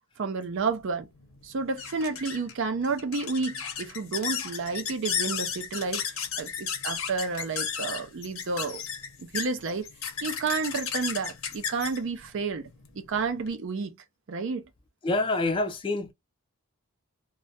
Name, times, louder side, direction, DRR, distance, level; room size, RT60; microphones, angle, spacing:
voice 1, 0.2-1.1 1.4-6.0 6.4-8.8 9.2-9.9 10.2-12.7 13.0-14.0 14.3-14.6, right 4 dB, 60° right, 0.4 m, -30 dB
sound 1, 0.6-13.5, left 7 dB, 75° left, 0.7 m, -35 dB
voice 2, 15.0-16.1, left 2 dB, 25° left, 0.3 m, -26 dB
2.3 x 2.1 x 2.6 m
head